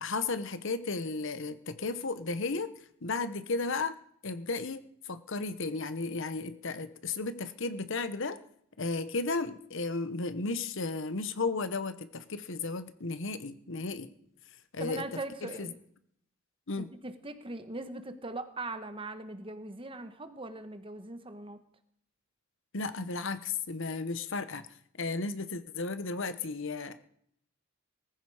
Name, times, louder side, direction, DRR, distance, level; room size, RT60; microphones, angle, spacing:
voice 1, 0.0-2.7 3.0-4.0 4.2-8.4 8.8-14.1 14.7-15.0 15.4-15.7 16.7-16.9 22.7-24.7 25.0-27.1, left 3 dB, 60° left, 12 dB, 1.0 m, -34 dB
voice 2, 14.8-15.8 16.8-21.6, right 2 dB, 25° right, 9 dB, 1.3 m, -40 dB
19.5 x 15.0 x 4.9 m, 0.68 s
head